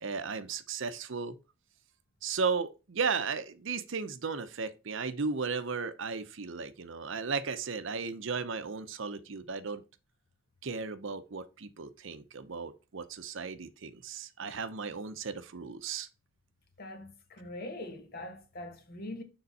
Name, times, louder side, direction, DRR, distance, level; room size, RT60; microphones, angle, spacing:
voice 1, 0.0-1.4 2.2-9.8 10.6-16.1, right 5 dB, 65° right, 0.7 m, -35 dB
voice 2, 16.8-19.2, left 1 dB, 50° left, 1.3 m, -42 dB
6.9 x 3.8 x 4.0 m
head